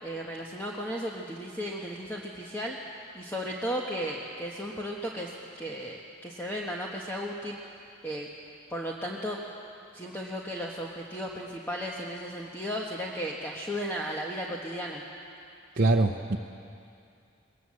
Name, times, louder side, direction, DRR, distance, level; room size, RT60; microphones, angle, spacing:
voice 1, 0.0-2.8 3.1-7.6 8.0-8.3 8.7-9.4 9.9-15.0, equal, 10° left, -2 dB, 1.2 m, -35 dB
voice 2, 15.8-16.4, right 2 dB, 50° right, 0 dB, 0.8 m, -23 dB
21.0 x 19.0 x 7.7 m, 2.6 s
head